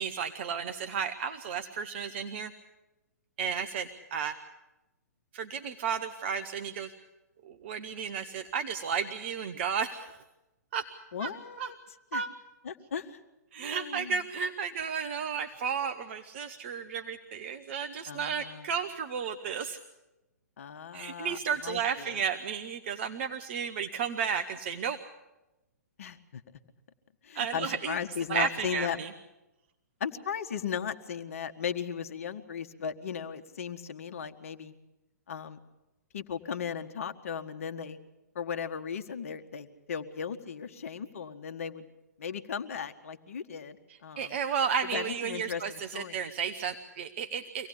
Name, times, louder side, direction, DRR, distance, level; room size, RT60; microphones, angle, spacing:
voice 1, 0.0-2.5 3.4-4.4 5.3-6.9 7.4-10.2 10.7-10.9 11.2-11.3 11.6-11.7 12.1-12.3 13.5-19.8 20.9-25.0 27.3-28.0 28.3-29.1 44.2-47.7, right 7 dB, 40° right, 8 dB, 1.0 m, -33 dB
voice 2, 11.1-11.7 12.1-12.2 12.6-13.2 13.7-14.2 18.1-18.7 20.6-22.2 26.0-26.4 27.2-29.0 30.0-34.7 35.3-35.6 36.1-38.0 38.3-41.9 42.2-43.8 44.0-44.4 44.9-46.2, left 7 dB, 55° left, 9 dB, 1.4 m, -36 dB
24.5 x 18.0 x 8.4 m, 1.0 s
figure-of-eight pair, 120°, 9 cm